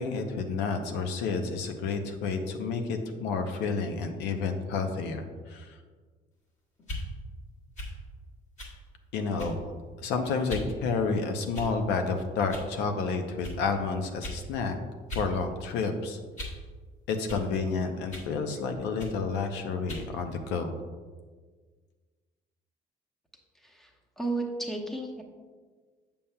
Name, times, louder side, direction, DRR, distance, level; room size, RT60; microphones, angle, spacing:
voice 1, 0.0-5.7 9.1-9.7 10.0-14.8 15.2-16.2 17.1-20.8, left 4 dB, 90° left, 6 dB, 0.7 m, -30 dB
sound 1, 6.8-7.1 7.8-8.0 8.6-8.8 9.4-9.7 10.5-10.7 11.5-11.9 12.5-12.7 13.4-13.6 14.2-14.4 15.1-15.3 15.7-16.6 17.3-17.5 18.1-18.3 19.0-19.2 19.9-20.1, left 1 dB, 45° left, 1.5 m, -38 dB
voice 2, 23.6-25.2, right 2 dB, ahead, 0 dB, 0.9 m, -34 dB
7.0 x 6.9 x 2.2 m, 1.5 s
cardioid pair, 110°, 17 cm